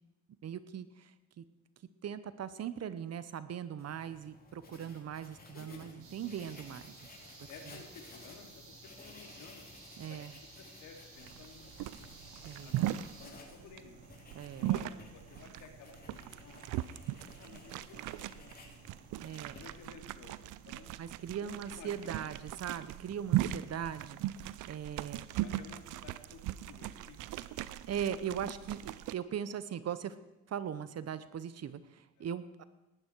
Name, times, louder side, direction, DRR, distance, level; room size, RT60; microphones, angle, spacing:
voice 1, 0.4-1.5 2.0-7.0 7.7-7.8 10.0-10.3 12.4-13.0 14.3-14.7 17.5-17.6 19.2-19.6 21.0-25.4 27.9-30.1 30.5-32.7, right 8 dB, 55° right, 14 dB, 1.0 m, -40 dB
Writing, 3.8-20.0, left 3 dB, 30° left, 3.4 m, -56 dB
voice 2, 5.5-5.9 7.5-9.6 10.1-10.2 10.6-12.0 12.6-12.9 13.2-14.0 14.6-16.8 17.0-18.7 19.5-20.9 21.4-21.9 22.1-22.3 25.4-27.5 32.2-32.3, left 5 dB, 80° left, 3 dB, 2.9 m, -54 dB
sound 1, 6.0-13.3, right 3 dB, 70° right, 6.8 m, -55 dB
sound 2, 11.2-29.1, right 14 dB, 90° right, 0.6 m, -39 dB
18.5 x 12.5 x 4.7 m, 1.0 s
cardioid pair, 90°, 30 cm